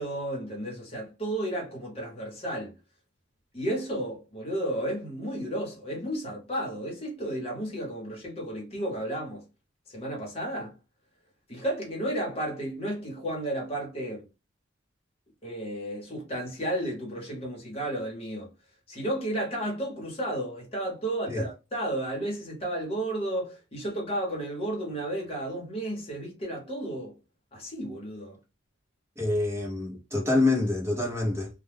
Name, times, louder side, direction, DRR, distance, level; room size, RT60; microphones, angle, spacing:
voice 1, 0.0-2.8 3.5-9.4 9.9-10.7 11.5-14.3 15.4-18.5 18.9-27.2 27.5-28.4, right 1 dB, 30° left, 1.0 m, -33 dB
voice 2, 29.2-31.5, left 2 dB, 15° right, 0.8 m, -26 dB
2.3 x 2.2 x 3.3 m
head